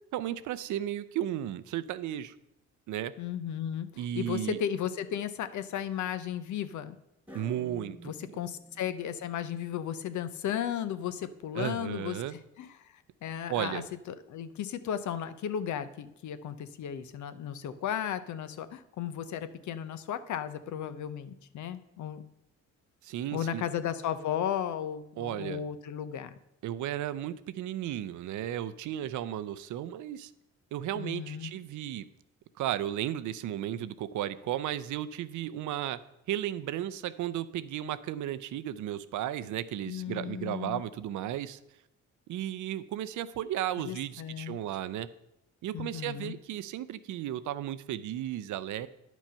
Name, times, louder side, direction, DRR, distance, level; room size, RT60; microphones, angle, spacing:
voice 1, 0.1-2.3 2.9-3.1 4.0-4.6 7.3-8.4 11.5-12.3 13.5-13.8 23.0-23.6 25.2-25.6 26.6-30.3 30.7-32.1 32.6-36.0 36.3-41.6 42.3-45.1 45.6-48.9, right 12 dB, 75° right, 15 dB, 0.6 m, -34 dB
voice 2, 3.2-7.0 8.0-13.8 14.1-22.2 23.3-26.4 30.9-31.5 39.8-40.8 43.8-44.6 45.7-46.3, left 9 dB, 75° left, 12 dB, 0.8 m, -35 dB
sound 1, 7.3-9.2, right 1 dB, 5° right, 1.6 m, -51 dB
10.0 x 6.1 x 5.6 m, 0.83 s
cardioid pair, 90°, 30 cm